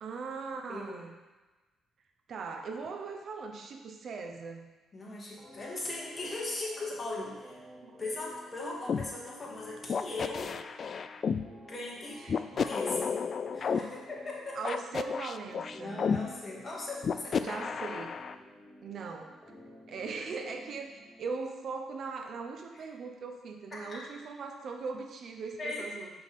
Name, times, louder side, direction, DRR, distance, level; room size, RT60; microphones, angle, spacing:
voice 1, 0.0-1.1 2.3-4.7 7.8-8.0 12.2-12.5 14.6-16.0 17.4-18.2 18.8-19.4 19.9-20.9 21.2-26.1, right 4 dB, 60° right, 4 dB, 0.7 m, -39 dB
voice 2, 0.7-1.0 4.9-7.6 8.0-10.5 11.7-12.2 12.5-13.2 13.5-14.8 15.7-17.6 22.7-22.9 23.7-24.0 25.6-25.9, left 2 dB, 30° left, -4 dB, 2.0 m, -39 dB
sound 1, 5.4-21.4, equal, 10° right, 1.3 m, -53 dB
sound 2, 8.9-9.0 9.9-11.4 12.3-13.8 14.6-16.2 17.0-18.3, left 6 dB, 50° left, 0.3 m, -31 dB
6.9 x 5.8 x 3.6 m, 1.2 s
cardioid pair, 90°, 0 cm